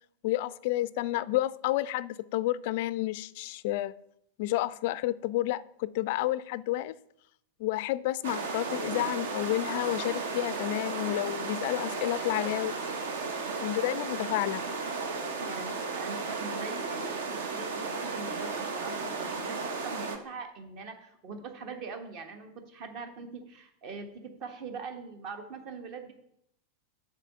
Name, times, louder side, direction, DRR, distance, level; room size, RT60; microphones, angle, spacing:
voice 1, 0.2-3.9 4.4-6.9 7.6-12.7 13.6-14.6, left 16 dB, 50° left, 0.3 m, -30 dB
sound 1, 8.2-20.2, right 4 dB, 60° right, 1.0 m, -34 dB
voice 2, 15.4-26.1, right 4 dB, 40° right, 1.3 m, -42 dB
7.4 x 4.8 x 6.6 m
figure-of-eight pair, 90°, 0 cm